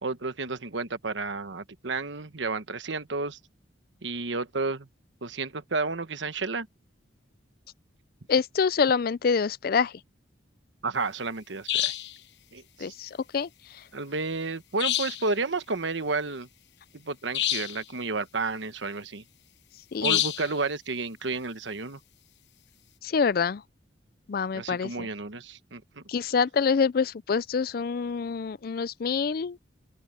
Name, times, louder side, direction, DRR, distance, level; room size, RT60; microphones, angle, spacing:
voice 1, 0.0-3.4 4.0-4.9 5.2-6.7 10.8-12.0 12.5-12.9 13.9-16.5 16.9-19.2 20.0-22.0 24.5-26.0, right 3 dB, 80° right, 1.2 m, -31 dB
voice 2, 8.3-9.9 12.8-13.5 19.9-20.2 23.0-23.6 24.3-25.1 26.1-29.6, left 5 dB, 50° left, 0.4 m, -26 dB
sound 1, 11.7-12.2 14.8-15.3 17.3-17.8 20.0-20.5, left 12 dB, 65° left, 1.0 m, -27 dB
open air
head